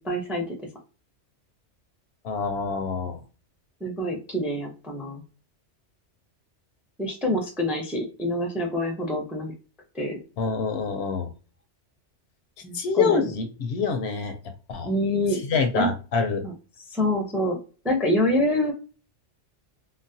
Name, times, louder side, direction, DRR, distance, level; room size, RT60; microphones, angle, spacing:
voice 1, 0.0-0.5 3.8-5.2 7.0-9.5 9.9-10.2 12.6-13.2 14.8-15.4 15.7-15.9 16.4-16.5 16.9-17.6 17.8-18.7, left 1 dB, ahead, 2 dB, 0.5 m, -26 dB
voice 2, 2.2-3.2 10.4-11.3 12.7-14.4 14.7-14.9 15.4-16.4, left 5 dB, 70° left, 7 dB, 0.8 m, -26 dB
3.9 x 2.0 x 2.6 m, 0.34 s
omnidirectional pair, 1.2 m